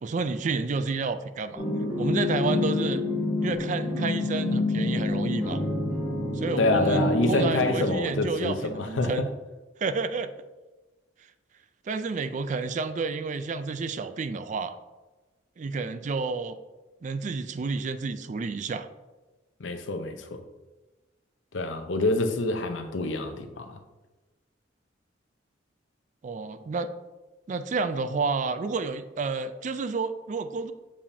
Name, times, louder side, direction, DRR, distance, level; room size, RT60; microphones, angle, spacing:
voice 1, 0.0-1.6 2.0-3.0 3.4-5.6 6.3-9.3 9.8-10.3 11.9-14.8 15.6-16.6 17.0-18.9 26.2-26.9 27.5-30.7, right 4 dB, 40° right, 11 dB, 0.3 m, -30 dB
sound 1, 1.6-7.9, left 2 dB, 5° right, 1.7 m, -28 dB
voice 2, 6.6-9.1 19.6-20.4 21.5-23.8, left 2 dB, 90° left, 6 dB, 0.7 m, -27 dB
6.9 x 5.0 x 2.7 m, 1.2 s
head